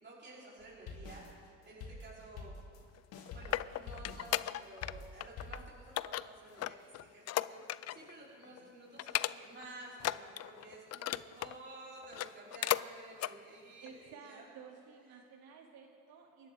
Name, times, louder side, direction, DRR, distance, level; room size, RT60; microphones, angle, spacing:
voice 1, 0.0-2.5 3.3-14.4 15.1-15.2, right 2 dB, 30° right, -7 dB, 4.6 m, -52 dB
sound 1, 0.6-5.7, left 3 dB, 75° left, 2.6 m, -48 dB
sound 2, 3.0-4.9 5.2-5.6 6.0-8.1 8.4-8.6 9.0-9.6 10.0-11.6 12.0-12.9 13.2-13.4 13.9-14.0, left 13 dB, 45° left, 0.4 m, -36 dB
voice 2, 8.4-8.7 13.8-16.5, right 6 dB, 70° right, 0 dB, 3.2 m, -54 dB
29.0 x 11.5 x 3.9 m, 2.5 s
supercardioid pair, 85°, 38 cm